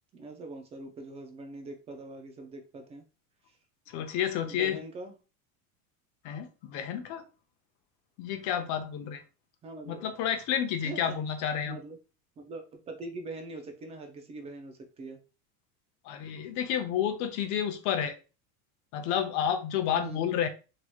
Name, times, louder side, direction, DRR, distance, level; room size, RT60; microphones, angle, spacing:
voice 1, 0.1-3.0 3.5-3.6 4.5-5.1 9.6-10.0 10.8-11.2 11.6-12.0 12.4-15.2 19.9-20.4, right 2 dB, 15° right, 5 dB, 0.3 m, -43 dB
voice 2, 3.9-4.8 6.2-7.2 8.2-9.2 9.9-11.8 16.0-18.1 18.9-20.5, left 9 dB, 45° left, 8 dB, 0.6 m, -30 dB
3.0 x 2.9 x 2.2 m, 0.32 s
supercardioid pair, 125°, 41 cm